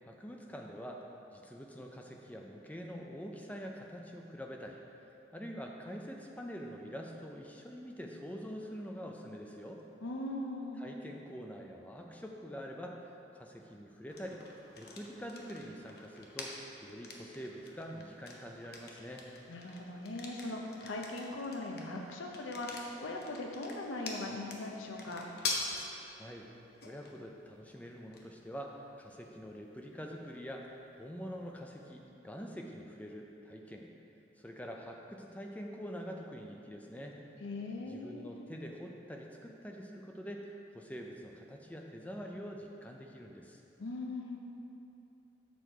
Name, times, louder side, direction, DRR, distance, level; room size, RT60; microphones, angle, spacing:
voice 1, 0.0-1.1 1.3-9.8 10.8-14.4 14.8-16.5 16.8-19.3 26.1-26.5 26.8-33.9 34.4-37.2 37.9-43.6, equal, 10° left, 1 dB, 0.5 m, -45 dB
voice 2, 10.0-10.8 19.5-25.2 37.4-38.3 43.8-44.4, left 2 dB, 85° left, 1 dB, 0.7 m, -40 dB
sound 1, 14.1-31.8, left 3 dB, 55° left, 0.8 m, -46 dB
7.1 x 6.4 x 4.4 m, 2.8 s
head